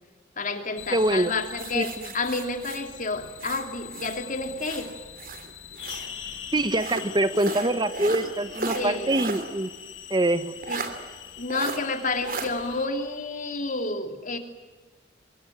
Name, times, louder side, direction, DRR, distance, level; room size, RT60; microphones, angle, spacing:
voice 1, 0.4-4.9 8.7-9.2 10.7-10.8 11.4-14.4, left 3 dB, 45° left, 6 dB, 2.9 m, -30 dB
sound 1, 0.8-12.9, left 8 dB, 85° left, 2.8 m, -42 dB
voice 2, 0.9-1.3 1.7-2.1 6.5-9.7 10.1-10.5, right 1 dB, 25° right, 13 dB, 1.0 m, -24 dB
sound 2, 1.6-4.2 4.6-6.1 6.7-9.5 9.8-9.9 10.6-10.9 11.5-11.8 12.2-12.5, right 3 dB, 50° right, 3.2 m, -35 dB
26.0 x 23.5 x 9.2 m, 1.3 s
head